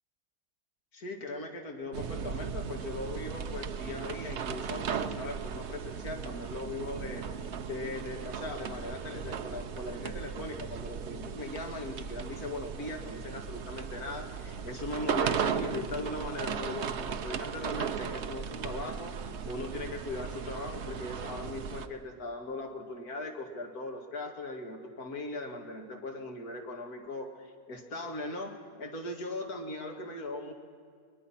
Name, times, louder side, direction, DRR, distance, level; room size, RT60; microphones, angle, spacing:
voice 1, 0.9-30.5, left 2 dB, 65° left, 3 dB, 2.6 m, -39 dB
sound 1, 1.9-21.9, right 7 dB, 50° right, 1.0 m, -36 dB
22.5 x 21.5 x 5.8 m, 2.1 s
omnidirectional pair, 1.7 m